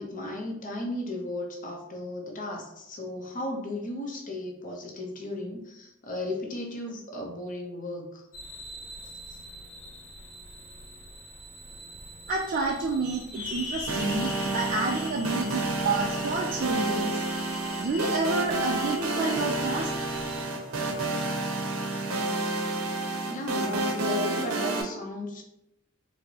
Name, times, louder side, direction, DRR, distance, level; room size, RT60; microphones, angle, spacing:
voice 1, 0.0-8.2 23.3-25.4, left 1 dB, 40° left, 1 dB, 0.6 m, -35 dB
sound 1, 8.3-20.4, left 2 dB, 85° left, 0.8 m, -42 dB
voice 2, 12.3-17.2 17.8-19.9, right 3 dB, 40° right, -1 dB, 0.3 m, -29 dB
sound 2, 13.9-24.8, right 2 dB, 85° right, 0.6 m, -30 dB
4.2 x 2.0 x 2.8 m, 0.83 s
head